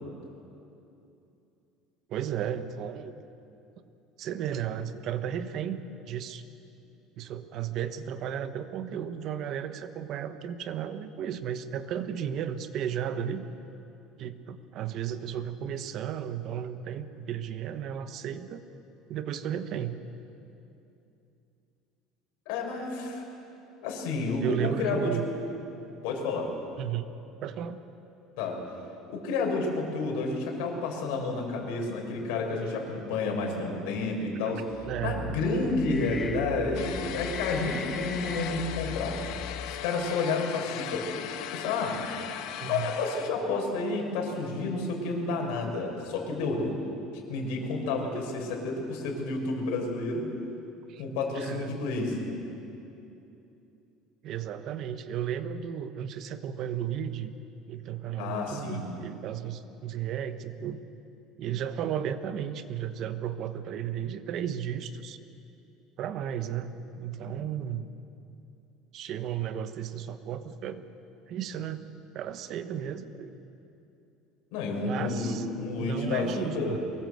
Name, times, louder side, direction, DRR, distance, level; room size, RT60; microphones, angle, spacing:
voice 1, 2.1-3.1 4.2-6.4 7.2-13.5 14.2-18.6 19.1-20.0 24.4-25.2 26.8-27.1 27.4-27.8 34.9-35.4 42.6-42.9 50.9-51.0 51.3-51.7 54.2-57.3 57.7-60.8 61.4-65.2 66.0-67.9 68.9-70.8 71.3-71.8 72.1-73.3 74.8-75.5 75.8-76.8, right 9 dB, 45° right, 10 dB, 1.2 m, -34 dB
voice 2, 22.5-23.3 23.8-25.1 26.0-26.5 28.4-28.6 29.1-34.6 35.0-39.2 39.7-41.2 41.5-42.0 42.7-46.7 47.3-50.3 51.0-52.3 58.2-58.8 67.3-67.4 74.5-76.8, left 3 dB, 75° left, 1 dB, 5.6 m, -30 dB
sound 1, 34.7-40.0, left 4 dB, 15° left, 0.6 m, -40 dB
sound 2, 36.7-43.3, left 11 dB, 60° left, 1.3 m, -38 dB
23.5 x 19.5 x 7.9 m, 2.8 s
cardioid pair, 165°, 0 cm